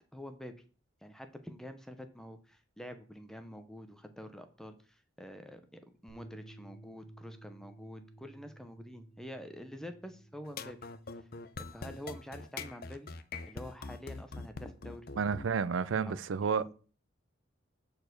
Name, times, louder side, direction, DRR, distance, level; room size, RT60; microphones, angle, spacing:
voice 1, 0.1-0.5 1.0-10.8 11.2-11.3 11.6-13.1 13.5-15.1 16.0-16.7, equal, 5° left, 0.7 m, -47 dB
Bass guitar, 6.1-12.3, right 1 dB, 65° left, 2.0 m, -55 dB
sound 1, 10.4-15.5, left 4 dB, 50° left, 0.6 m, -43 dB
voice 2, 15.2-16.7, right 6 dB, 75° right, 0.4 m, -31 dB
6.8 x 4.2 x 6.7 m
head